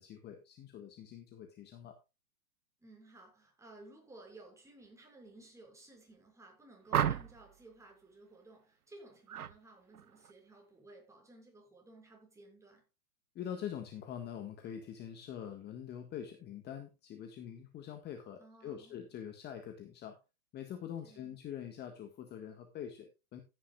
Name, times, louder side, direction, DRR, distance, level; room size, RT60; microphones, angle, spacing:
voice 1, 0.0-2.0 13.4-20.2 20.5-23.4, left 9 dB, 25° left, 1.7 m, -44 dB
voice 2, 2.8-12.8 18.4-19.0 21.0-21.4, right 2 dB, 5° right, 6.1 m, -57 dB
sound 1, 6.9-7.5 9.3-9.6 9.9-10.3, right 9 dB, 85° right, 1.0 m, -33 dB
15.0 x 10.0 x 2.4 m
hypercardioid pair, 125°, 44 cm